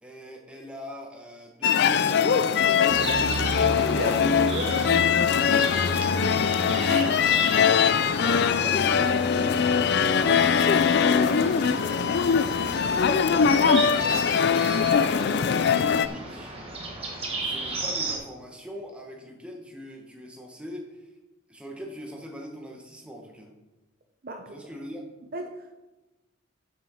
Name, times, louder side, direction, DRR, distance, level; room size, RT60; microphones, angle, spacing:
voice 1, 0.0-3.5 6.6-9.5 10.1-14.8 15.1-16.5 17.4-21.1 21.5-23.5 24.5-25.0, equal, 5° right, 0 dB, 1.3 m, -41 dB
sound 1, 1.6-16.1, left 6 dB, 50° left, 0.3 m, -22 dB
sound 2, 2.9-18.2, right 2 dB, 25° right, 1.5 m, -34 dB
voice 2, 3.8-4.9 8.6-8.7 24.2-24.7 25.3-25.8, right 1 dB, 45° right, 4 dB, 0.7 m, -36 dB
7.2 x 6.1 x 6.3 m, 1.0 s
head